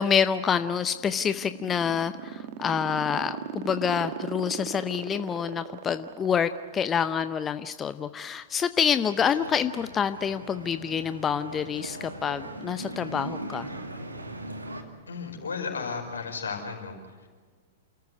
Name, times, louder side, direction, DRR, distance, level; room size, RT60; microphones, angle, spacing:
voice 1, 0.0-13.7, left 7 dB, 20° left, 12 dB, 0.7 m, -27 dB
sound 1, 0.8-7.3, right 10 dB, 50° right, 1.7 m, -37 dB
sound 2, 9.0-14.8, right 1 dB, 90° right, 2.3 m, -39 dB
voice 2, 15.1-17.3, left 5 dB, 80° left, 1 dB, 5.4 m, -34 dB
28.5 x 14.0 x 9.4 m, 1.5 s
figure-of-eight pair, 105°, 0 cm